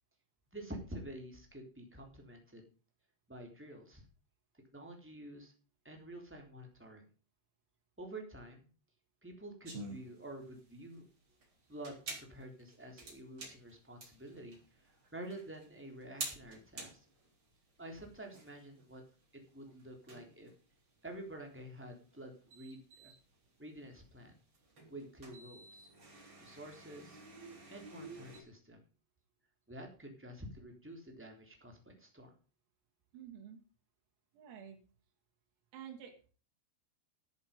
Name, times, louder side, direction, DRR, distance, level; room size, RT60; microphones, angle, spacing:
voice 1, 0.5-2.6 3.3-4.0 4.7-5.5 5.8-7.0 8.0-8.7 9.2-11.0 11.7-17.0 17.8-19.0 19.3-20.5 21.0-23.1 23.6-24.3 24.9-25.9 26.4-27.2 27.7-28.8 29.7-32.3, right 1 dB, 5° right, 2 dB, 2.3 m, -49 dB
sound 1, 9.6-28.4, right 3 dB, 25° right, 3.7 m, -50 dB
voice 2, 33.1-33.6 34.3-34.8 35.7-36.3, right 9 dB, 85° right, 3 dB, 5.3 m, -50 dB
13.5 x 8.4 x 5.3 m, 0.37 s
omnidirectional pair, 5.9 m